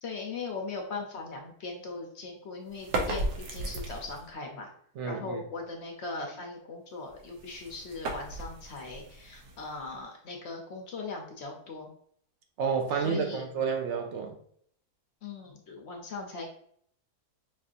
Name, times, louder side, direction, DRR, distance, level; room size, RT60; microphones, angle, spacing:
voice 1, 0.0-4.7 5.0-11.9 12.9-13.4 15.2-16.5, left 3 dB, 55° left, 1 dB, 0.9 m, -39 dB
sound 1, 2.7-4.3 7.0-10.0, right 2 dB, 90° right, 1.3 m, -36 dB
voice 2, 5.0-5.4 12.6-14.4, right 6 dB, 65° right, 4 dB, 0.7 m, -30 dB
5.4 x 2.7 x 2.5 m, 0.63 s
omnidirectional pair, 1.7 m